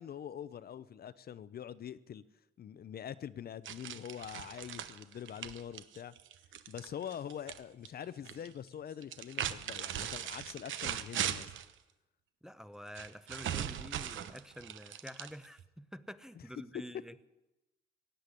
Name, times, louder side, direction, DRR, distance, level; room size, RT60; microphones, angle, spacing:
voice 1, 0.0-2.2 2.6-6.1 6.7-11.5 16.7-16.8, left 9 dB, 50° left, 15 dB, 0.6 m, -44 dB
sound 1, 3.6-7.6 7.8-8.5 9.0-11.7 12.9-15.6, right 10 dB, 75° right, 1.0 m, -39 dB
voice 2, 12.4-17.3, equal, 5° right, 12 dB, 0.7 m, -48 dB
17.0 x 7.8 x 9.9 m, 1.0 s
cardioid pair, 90°, 20 cm